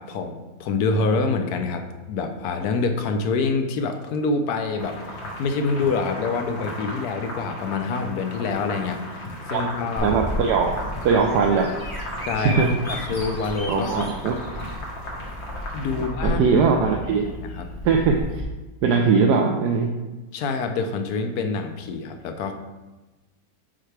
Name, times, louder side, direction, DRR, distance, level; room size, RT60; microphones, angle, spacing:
voice 1, 0.0-10.1 12.2-14.1 15.7-16.5 17.4-17.7 20.3-22.5, left 4 dB, 70° left, 6 dB, 1.0 m, -26 dB
sound 1, 4.8-16.1, left 1 dB, 85° left, 2.1 m, -36 dB
Bird vocalization bird call bird song, 10.0-18.4, equal, 20° left, 0.7 m, -33 dB
voice 2, 10.0-10.8 11.0-11.7 12.4-12.7 13.7-14.3 16.0-17.3 17.8-18.4 18.8-19.9, right 5 dB, 75° right, 2 dB, 1.1 m, -20 dB
7.6 x 4.5 x 3.3 m, 1.1 s
omnidirectional pair, 2.0 m